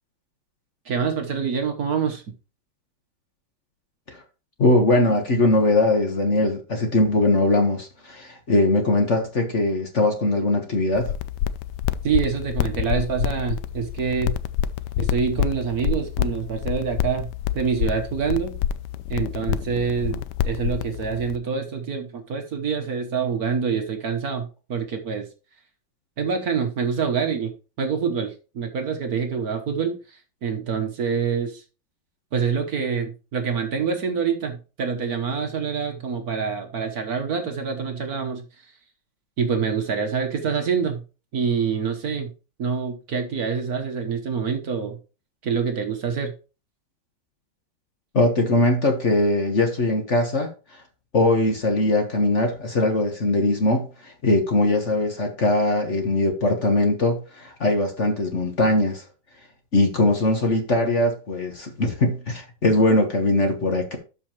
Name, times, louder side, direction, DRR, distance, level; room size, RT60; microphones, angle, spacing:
voice 1, 0.8-2.2 12.0-14.3 15.0-17.3 17.5-18.6 19.1-25.3 26.2-27.5 27.8-31.6 32.3-38.4 39.4-41.0 41.3-42.3 42.6-45.0 45.4-46.3, right 6 dB, 55° right, 1.5 m, -26 dB
voice 2, 4.6-11.1 48.1-50.5 51.1-59.0 59.7-64.0, left 2 dB, 40° left, 1.4 m, -21 dB
sound 1, 10.9-21.4, left 10 dB, 75° left, 1.0 m, -27 dB
12.5 x 5.4 x 3.0 m
omnidirectional pair, 2.2 m